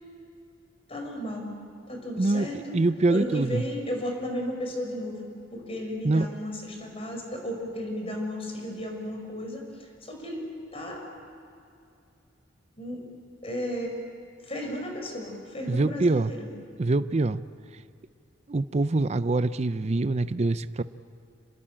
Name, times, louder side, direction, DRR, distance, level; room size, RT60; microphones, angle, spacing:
voice 1, 0.9-1.6 1.9-2.8 3.1-11.0 12.8-13.0 13.4-13.9 14.4-16.5, equal, 30° left, 3 dB, 5.2 m, -34 dB
voice 2, 2.2-3.6 6.0-6.3 15.7-16.3 16.8-17.4 18.5-20.8, right 2 dB, 35° right, 13 dB, 0.5 m, -24 dB
27.5 x 21.0 x 8.9 m, 2.6 s
head